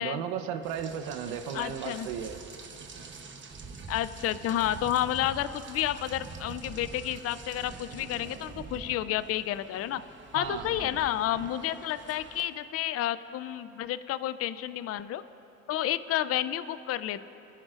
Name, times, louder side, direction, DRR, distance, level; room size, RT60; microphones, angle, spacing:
voice 1, 0.0-2.4 10.3-11.0, right 8 dB, 80° right, 7 dB, 0.9 m, -35 dB
Rain, 0.6-12.4, right 4 dB, 30° right, 1.0 m, -45 dB
voice 2, 1.5-2.1 3.9-10.0 10.3-15.2 15.7-17.3, left 12 dB, 45° left, 14 dB, 0.4 m, -30 dB
26.5 x 10.5 x 2.5 m, 3.0 s
supercardioid pair, 90°, 36 cm